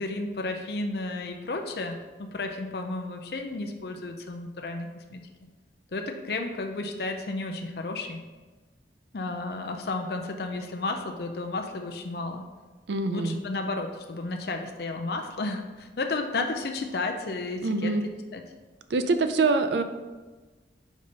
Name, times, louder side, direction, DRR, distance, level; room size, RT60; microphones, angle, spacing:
voice 1, 0.0-5.2 5.9-8.2 9.1-12.4 13.1-17.9 18.3-18.4, left 2 dB, 60° left, 4 dB, 0.5 m, -32 dB
voice 2, 12.9-13.3 17.6-18.0 18.9-19.8, right 3 dB, 75° right, 9 dB, 0.5 m, -24 dB
5.1 x 4.1 x 5.2 m, 1.3 s
head